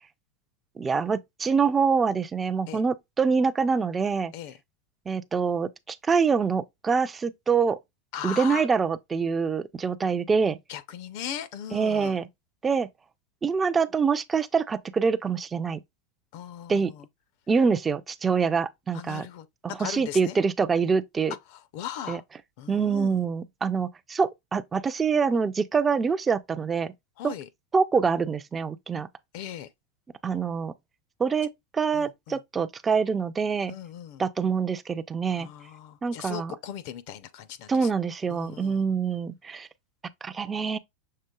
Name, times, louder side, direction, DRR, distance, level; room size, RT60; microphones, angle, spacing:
voice 1, 0.8-4.3 5.1-7.8 8.2-10.6 11.7-12.3 12.6-12.9 13.4-15.8 16.7-16.9 17.5-19.3 19.6-21.4 22.1-22.2 22.7-26.9 27.2-27.3 27.7-29.1 30.2-30.7 31.2-33.7 34.2-35.5 36.0-36.5 37.7-39.7 40.2-40.8, right 5 dB, 15° right, 0.3 m, -25 dB
voice 2, 8.1-8.7 10.7-12.2 16.3-17.1 18.9-19.5 19.8-20.4 21.5-22.2 22.6-23.2 27.2-27.5 29.3-29.7 31.9-32.4 33.7-34.2 35.4-37.9 38.3-38.8, left 10 dB, 50° left, 0.5 m, -38 dB
6.5 x 3.4 x 2.2 m
supercardioid pair, 170°, 0 cm